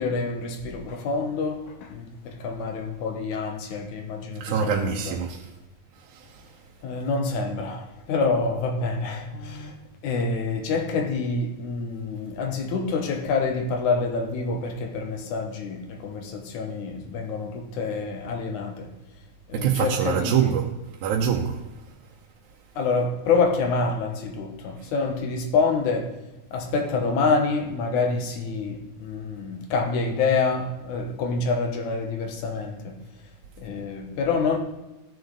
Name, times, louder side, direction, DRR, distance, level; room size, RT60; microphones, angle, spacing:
voice 1, 0.0-5.2 6.8-9.7 10.0-18.9 19.5-20.5 22.8-26.2 26.5-33.0 33.6-34.6, left 4 dB, 85° left, 2.7 m, -27 dB
voice 2, 4.4-5.5 6.0-6.6 19.5-22.0 24.8-24.9, right 8 dB, 85° right, 2.1 m, -26 dB
15.0 x 6.7 x 3.9 m
omnidirectional pair, 3.3 m